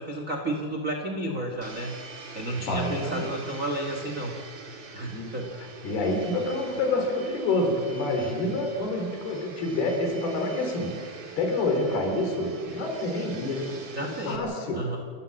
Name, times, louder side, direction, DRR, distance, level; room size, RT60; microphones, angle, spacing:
voice 1, 0.0-2.0 2.3-4.3 4.9-5.5 13.9-14.4 14.7-15.0, right 1 dB, 85° right, 2 dB, 0.7 m, -31 dB
Domestic sounds home sounds, 1.6-14.4, right 5 dB, 40° right, 2.1 m, -44 dB
voice 2, 2.6-3.3 5.1-5.3 5.8-14.8, left 2 dB, 80° left, 3 dB, 5.0 m, -28 dB
29.5 x 13.0 x 7.7 m, 2.2 s
omnidirectional pair, 4.4 m